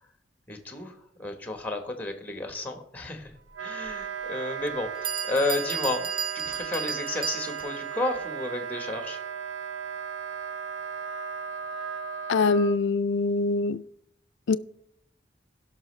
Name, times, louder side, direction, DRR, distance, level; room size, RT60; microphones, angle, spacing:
voice 1, 0.5-9.2, left 2 dB, 10° left, 1.1 m, -32 dB
Wind instrument woodwind instrument, 3.5-12.8, right 6 dB, 80° right, 0.6 m, -36 dB
Bell, 3.9-4.0 4.7-4.8 5.0-7.8, right 7 dB, 25° right, 0.5 m, -34 dB
voice 2, 12.3-13.9 14.5-14.6, left 3 dB, 70° left, 0.4 m, -24 dB
17.0 x 5.9 x 3.2 m
head